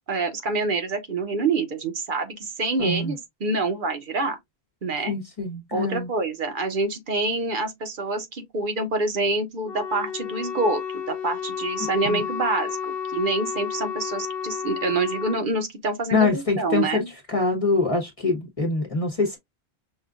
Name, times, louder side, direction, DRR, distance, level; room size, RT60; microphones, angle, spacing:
voice 1, 0.1-4.4 4.8-5.1 5.7-10.8 11.1-17.1, right 3 dB, 55° right, 0.9 m, -26 dB
voice 2, 2.8-3.1 5.1-6.1 11.8-12.2 16.1-17.0 17.3-19.4, left 3 dB, 35° left, 1.0 m, -24 dB
Wind instrument woodwind instrument, 9.6-15.4, left 7 dB, 65° left, 1.0 m, -31 dB
5.6 x 2.4 x 2.4 m
omnidirectional pair, 1.1 m